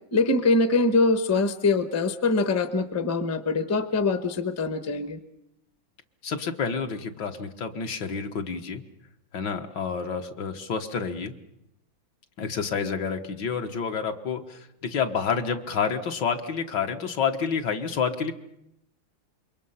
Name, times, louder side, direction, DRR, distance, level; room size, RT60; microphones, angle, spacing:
voice 1, 0.1-5.2, left 3 dB, 15° left, 9 dB, 0.7 m, -23 dB
voice 2, 6.2-8.8 9.3-11.3 12.4-18.3, left 6 dB, 65° left, 5 dB, 1.9 m, -29 dB
27.0 x 23.0 x 5.7 m, 0.81 s
omnidirectional pair, 2.1 m